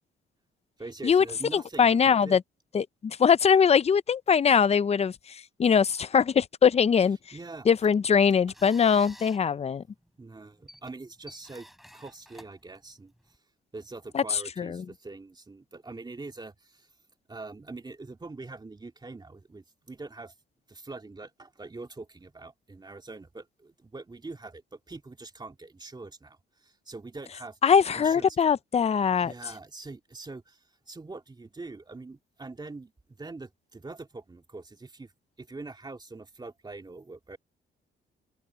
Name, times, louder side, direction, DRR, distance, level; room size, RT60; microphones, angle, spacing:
voice 1, 0.8-2.4 7.3-7.7 10.2-11.7 11.9-13.1 13.7-16.9 17.3-20.3 20.7-27.6 27.9-28.3 29.2-35.1 35.4-37.4, right 3 dB, 20° right, 2.7 m, -43 dB
voice 2, 1.5-2.4 2.7-7.2 7.7-9.8 14.1-14.8 27.6-29.3, left 7 dB, 30° left, 0.6 m, -22 dB
sound 1, 7.7-13.4, equal, ahead, 6.3 m, -53 dB
open air
cardioid pair, 90°, 20 cm